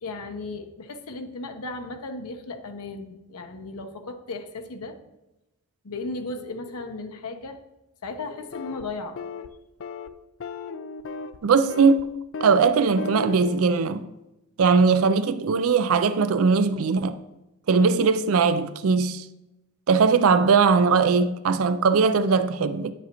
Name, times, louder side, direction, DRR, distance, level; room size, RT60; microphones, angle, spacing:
voice 1, 0.0-5.0 5.8-7.6 8.0-9.2, left 3 dB, 85° left, 0.8 m, -35 dB
sound 1, 8.5-8.8 9.2-9.5 9.8-10.1 10.4-11.4 11.7-12.0 12.3-12.6 13.0-13.6, left 4 dB, 60° left, 0.4 m, -35 dB
voice 2, 11.4-12.1 12.4-14.1 14.6-17.2 17.7-19.3 19.9-22.9, right 5 dB, 70° right, 0.4 m, -20 dB
9.2 x 7.2 x 2.9 m
head